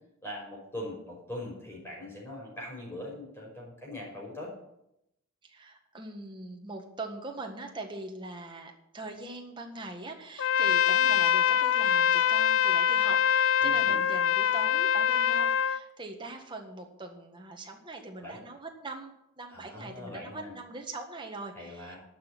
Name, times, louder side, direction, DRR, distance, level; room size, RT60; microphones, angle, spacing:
voice 1, 0.2-4.5 13.6-14.0 18.2-18.4 19.5-20.5 21.5-22.0, left 1 dB, 10° left, -3 dB, 5.4 m, -41 dB
voice 2, 5.4-22.0, right 2 dB, 20° right, 2 dB, 1.7 m, -42 dB
Trumpet, 10.4-15.8, left 9 dB, 60° left, 0.4 m, -24 dB
12.0 x 6.4 x 9.3 m, 0.83 s
head